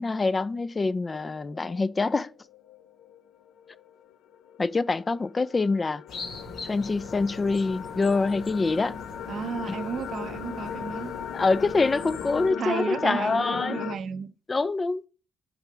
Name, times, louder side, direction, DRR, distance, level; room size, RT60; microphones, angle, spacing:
voice 1, 0.0-2.3 4.6-6.0 6.6-8.9 11.3-13.9 14.5-15.0, left 3 dB, 30° left, 0.3 m, -25 dB
sound 1, 1.1-14.0, left 8 dB, 85° left, 0.5 m, -38 dB
sound 2, 6.1-12.5, left 3 dB, 70° left, 1.5 m, -42 dB
voice 2, 9.3-11.2 12.6-14.3, right 7 dB, 60° right, 0.5 m, -33 dB
5.6 x 3.8 x 4.7 m
cardioid pair, 90°, 0 cm